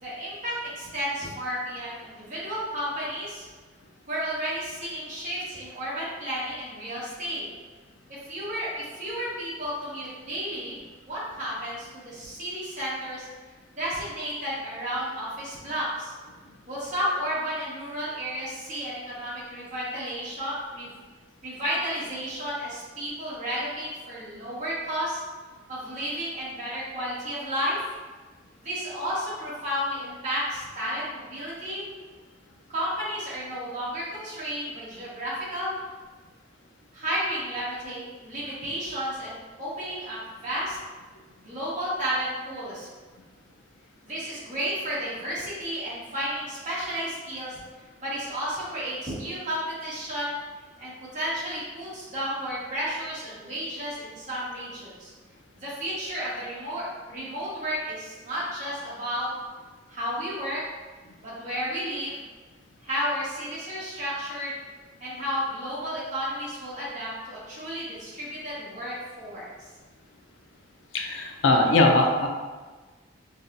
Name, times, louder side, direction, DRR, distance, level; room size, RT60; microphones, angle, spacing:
voice 1, 0.0-3.5 4.1-7.4 8.3-10.8 11.1-13.3 13.8-16.1 16.7-21.0 21.4-25.2 25.7-27.8 28.6-31.8 32.7-35.8 36.9-40.8 41.4-42.9 44.0-47.6 48.0-50.4 50.8-55.1 55.6-59.3 59.9-60.6 61.2-62.2 62.8-64.5 65.0-69.5, equal, 45° right, -8 dB, 1.5 m, -32 dB
voice 2, 70.9-72.3, left 2 dB, 80° left, 2 dB, 0.5 m, -20 dB
5.3 x 2.4 x 2.6 m, 1.3 s
head